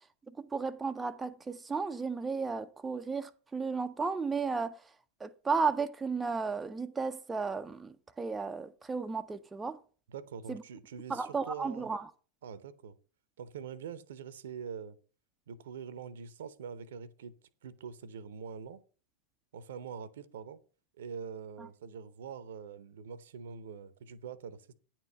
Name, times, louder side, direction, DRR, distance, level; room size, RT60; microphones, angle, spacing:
voice 1, 0.4-4.8 5.2-9.8 10.5-10.6 11.1-12.0, right 4 dB, 10° right, 0.4 m, -34 dB
voice 2, 10.1-11.9 12.4-13.0 13.4-15.0 15.5-17.4 17.6-18.8 19.5-20.6 21.0-24.7, right 7 dB, 60° right, 0.7 m, -44 dB
9.5 x 4.5 x 6.6 m
figure-of-eight pair, 90°, 0 cm